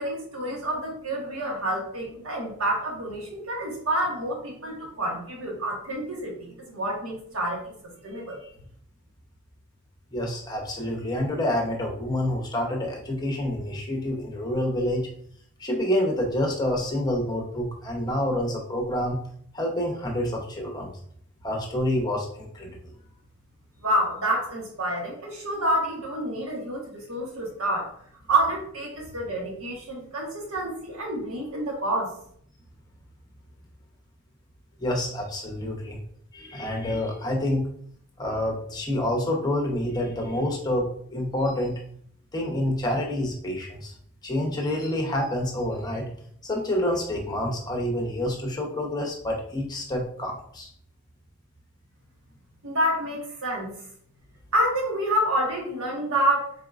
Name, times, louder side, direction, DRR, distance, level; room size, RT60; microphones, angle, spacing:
voice 1, 0.0-8.5 23.8-27.9 28.3-32.1 52.6-53.7 54.5-56.5, right 1 dB, 70° right, -1 dB, 1.4 m, -28 dB
voice 2, 10.1-15.1 15.6-19.2 19.5-20.9 21.4-22.7 34.8-36.0 36.3-37.7 38.2-41.8 42.3-43.9 44.2-46.1 46.4-50.7, left 1 dB, 20° left, 1 dB, 0.9 m, -28 dB
4.4 x 4.0 x 2.5 m, 0.64 s
head